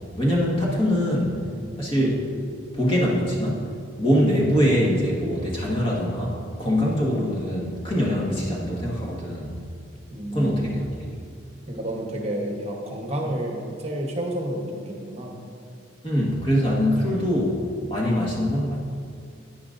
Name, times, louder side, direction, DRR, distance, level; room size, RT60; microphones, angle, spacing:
voice 1, 0.0-1.4 1.8-2.2 2.7-3.7 4.0-9.5 10.3-11.1 16.0-17.6 17.9-18.8, equal, 25° left, -4 dB, 1.5 m, -23 dB
voice 2, 0.9-1.8 10.1-10.9 11.7-15.4 18.0-18.2, right 1 dB, 30° right, 1 dB, 1.0 m, -31 dB
10.0 x 9.9 x 2.6 m, 2.3 s
head